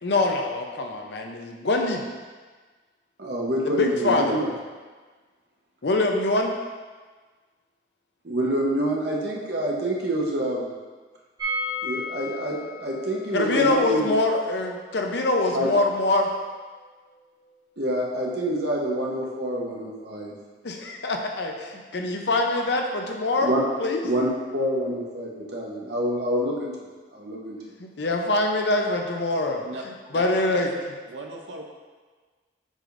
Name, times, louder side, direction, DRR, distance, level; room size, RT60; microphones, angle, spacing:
voice 1, 0.0-2.0 3.8-4.3 5.8-6.5 13.3-16.3 20.6-23.5 23.8-24.0 27.8-29.6 30.1-30.7, left 2 dB, 65° left, 2 dB, 0.7 m, -24 dB
voice 2, 3.2-4.5 8.2-10.7 11.8-14.1 15.5-15.7 17.8-20.3 23.4-23.7 24.0-27.7, right 1 dB, 60° right, -3 dB, 1.1 m, -27 dB
sound 1, 11.4-17.2 17.4-17.5 17.8-17.9, left 1 dB, 20° right, 1.7 m, -36 dB
voice 3, 30.1-30.7 31.1-31.6, right 2 dB, 80° right, 2 dB, 0.7 m, -36 dB
7.4 x 5.1 x 2.6 m, 1.4 s
head